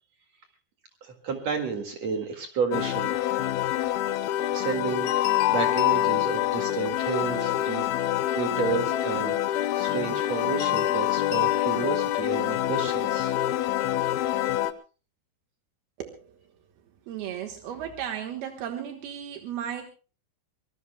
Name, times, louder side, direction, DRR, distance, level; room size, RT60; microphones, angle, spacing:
voice 1, 1.0-3.1 4.4-7.8 8.4-13.3, right 5 dB, 50° right, 4 dB, 2.8 m, -31 dB
sound 1, 2.7-14.7, left 14 dB, 80° left, 2.8 m, -26 dB
voice 2, 16.0-16.4 17.1-19.8, right 9 dB, 80° right, 4 dB, 3.3 m, -35 dB
25.0 x 20.0 x 2.2 m, 0.34 s
omnidirectional pair, 4.4 m